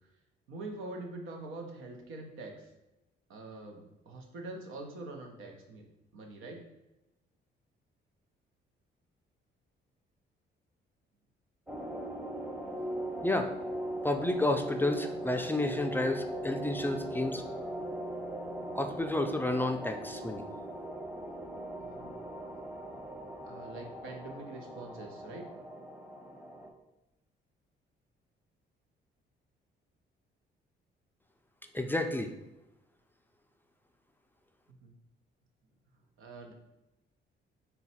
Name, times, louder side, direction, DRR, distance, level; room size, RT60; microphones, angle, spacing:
voice 1, 0.5-2.7 3.3-5.8 6.1-6.6 21.8-22.1 23.4-25.5 34.8-34.9 36.2-36.5, right 2 dB, 85° right, 2 dB, 0.8 m, -44 dB
sound 1, 11.7-26.7, right 1 dB, 5° right, 0.7 m, -40 dB
voice 2, 14.0-17.4 18.7-20.4 31.7-32.3, left 2 dB, 10° left, 5 dB, 0.3 m, -31 dB
4.0 x 2.2 x 4.1 m, 0.97 s
cardioid pair, 90°, 20 cm